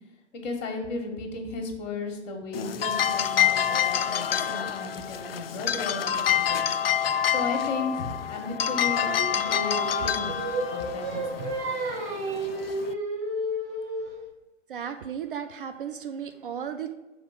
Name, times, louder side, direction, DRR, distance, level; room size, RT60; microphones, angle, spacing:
voice 1, 0.3-6.7 7.2-10.4 10.7-11.5, left 3 dB, 35° left, 3 dB, 1.5 m, -35 dB
sound 1, 2.5-12.9, left 9 dB, 50° left, 0.5 m, -27 dB
Singing, 9.0-14.2, right 2 dB, 25° right, 1.2 m, -31 dB
voice 2, 14.7-16.9, right 8 dB, 45° right, 7 dB, 0.6 m, -35 dB
6.5 x 4.3 x 6.6 m, 1.0 s
figure-of-eight pair, 115°, 37 cm